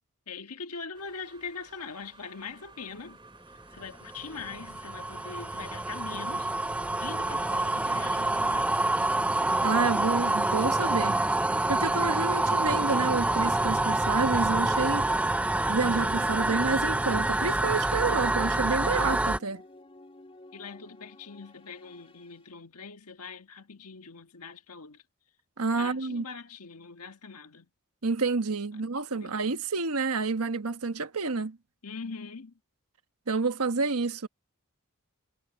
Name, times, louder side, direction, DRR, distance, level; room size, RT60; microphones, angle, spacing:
voice 1, 0.3-3.2 3.7-8.8 20.5-25.0 25.8-27.7 28.7-28.8 29.1-29.4 31.8-32.6, left 5 dB, 90° left, 1.5 m, -42 dB
sound 1, 0.9-8.4, right 3 dB, 20° right, 2.6 m, -55 dB
sound 2, 3.8-19.4, right 2 dB, 5° right, 0.3 m, -27 dB
sound 3, 5.3-22.5, left 2 dB, 25° left, 2.9 m, -52 dB
voice 2, 9.6-11.2 11.7-15.1 15.7-19.6 25.6-26.2 28.0-31.6 33.3-34.3, right 4 dB, 80° right, 1.3 m, -29 dB
head